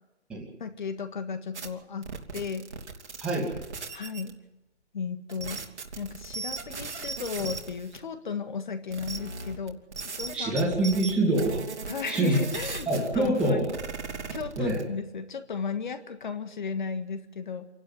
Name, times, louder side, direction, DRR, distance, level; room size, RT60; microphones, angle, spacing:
voice 1, 0.6-2.7 3.9-4.4 4.9-5.6 6.0-10.6 11.9-12.9 13.1-13.8 14.3-17.7, left 6 dB, 40° left, 9 dB, 1.7 m, -35 dB
sound 1, 1.5-1.7 2.0-4.3 5.3-8.0 8.9-14.8, right 4 dB, 70° right, 3.1 m, -37 dB
voice 2, 3.2-3.5 10.3-11.6 12.1-12.4 12.9-13.7 14.6-14.8, right 1 dB, 5° right, -5 dB, 2.4 m, -25 dB
27.0 x 12.0 x 9.8 m, 1.0 s
hypercardioid pair, 165°, 35 cm